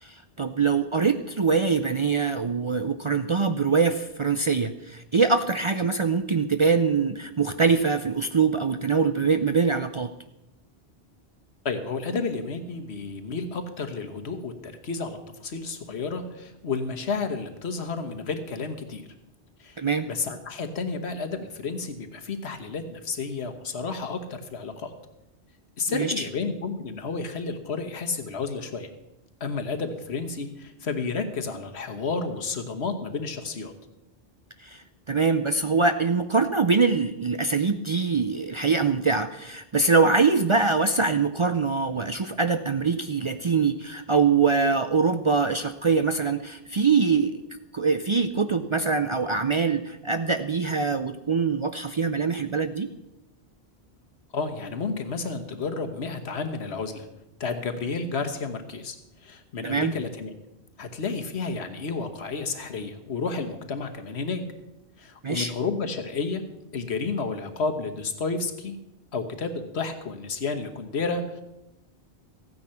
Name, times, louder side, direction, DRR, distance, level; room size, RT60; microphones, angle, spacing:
voice 1, 0.0-10.1 19.8-20.1 25.9-26.3 34.6-47.4 47.7-52.9 59.6-59.9 65.2-65.5, right 4 dB, 40° right, 9 dB, 0.4 m, -23 dB
voice 2, 11.6-19.0 19.6-24.9 25.8-28.9 29.4-33.7 54.3-57.1 57.4-59.0 59.2-60.3 60.8-64.4 65.0-66.4 66.7-68.8 69.1-71.4, left 4 dB, 85° left, 6 dB, 1.5 m, -31 dB
14.5 x 9.4 x 5.7 m, 0.91 s
omnidirectional pair, 1.1 m